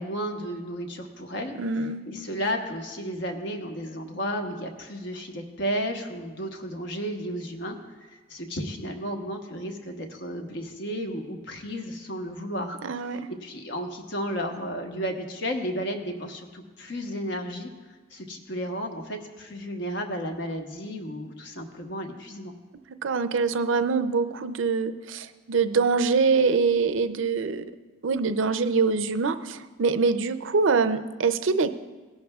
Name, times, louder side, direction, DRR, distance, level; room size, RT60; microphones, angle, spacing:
voice 1, 0.0-1.5 2.1-7.8 8.3-12.8 13.4-17.7 18.1-22.5, equal, 60° left, 3 dB, 1.1 m, -33 dB
voice 2, 1.5-2.0 12.8-13.3 23.0-27.6 28.0-31.7, right 4 dB, 75° right, 11 dB, 0.5 m, -24 dB
18.0 x 11.0 x 2.3 m, 1.3 s
head